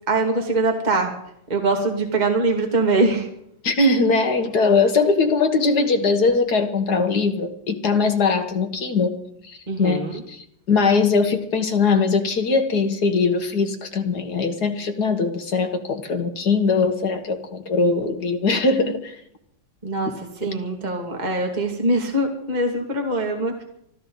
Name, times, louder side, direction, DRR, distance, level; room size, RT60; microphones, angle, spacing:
voice 1, 0.1-1.1 1.5-3.3 9.7-10.1 19.8-20.1 20.4-23.6, right 2 dB, 20° right, 2 dB, 2.3 m, -22 dB
voice 2, 3.6-19.2, left 4 dB, 55° left, 7 dB, 1.9 m, -21 dB
25.0 x 14.5 x 3.9 m, 0.74 s
omnidirectional pair, 2.2 m